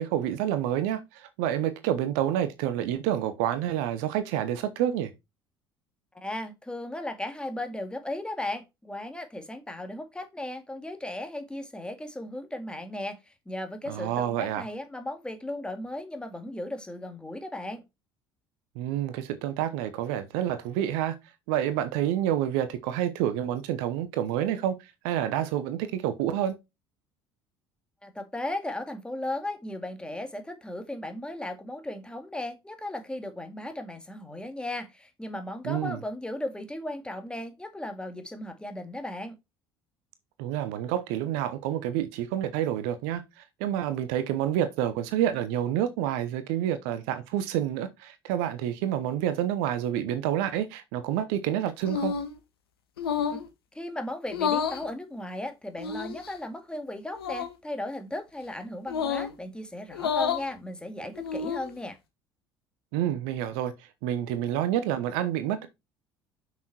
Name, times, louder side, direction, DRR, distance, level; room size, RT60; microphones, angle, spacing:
voice 1, 0.0-5.1 13.9-14.6 18.8-21.1 21.5-24.7 25.0-26.6 35.6-36.0 40.4-43.2 43.6-52.1 62.9-63.7 64.0-65.7, right 11 dB, 60° right, 1.0 m, -28 dB
voice 2, 6.1-13.2 13.5-17.8 28.0-39.4 53.7-62.0, left 1 dB, 5° left, 2.2 m, -36 dB
sound 1, 51.9-52.3 53.0-53.5 54.3-54.8 55.8-56.3 57.1-57.5 58.9-59.3 59.9-60.5 61.1-61.7, left 7 dB, 75° left, 1.5 m, -29 dB
7.4 x 6.2 x 4.3 m
figure-of-eight pair, 60°, 13 cm